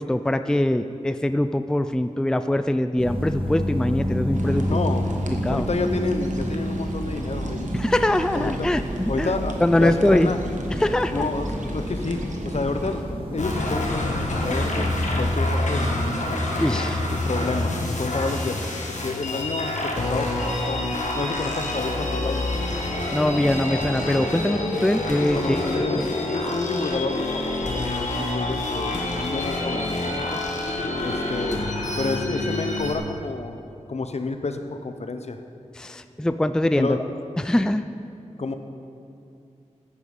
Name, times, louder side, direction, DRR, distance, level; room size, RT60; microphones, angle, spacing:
voice 1, 0.0-4.8 5.3-5.7 7.7-9.3 9.6-10.3 10.8-11.3 16.6-17.0 23.1-25.6 26.0-26.1 35.8-37.0 37.4-37.8, left 1 dB, 5° left, 10 dB, 0.4 m, -23 dB
sound 1, 3.0-15.3, equal, 45° right, 2.0 m, -29 dB
sound 2, 4.3-13.0, right 1 dB, 85° right, 1.2 m, -38 dB
voice 2, 4.7-7.7 8.3-8.7 9.1-10.4 11.1-14.9 15.1-16.1 17.1-20.8 21.2-22.5 25.3-30.4 31.0-31.6 32.0-33.6 33.9-35.4 36.8-37.0 38.4-38.5, left 3 dB, 60° left, 7 dB, 0.9 m, -30 dB
sound 3, 13.4-32.9, left 1 dB, 80° left, 1.6 m, -27 dB
14.0 x 9.9 x 5.5 m, 2.5 s
wide cardioid pair, 90°, 12 cm